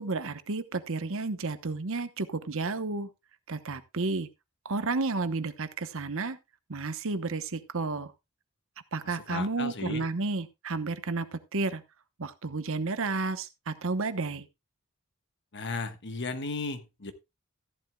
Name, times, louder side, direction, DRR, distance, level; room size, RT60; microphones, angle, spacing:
voice 1, 0.0-3.1 3.5-4.3 4.6-6.4 6.7-8.1 8.9-11.8 12.2-14.5, right 3 dB, 60° right, 1.0 m, -32 dB
voice 2, 9.0-10.0 15.5-17.1, left 3 dB, 50° left, 1.3 m, -35 dB
14.5 x 11.0 x 2.3 m
head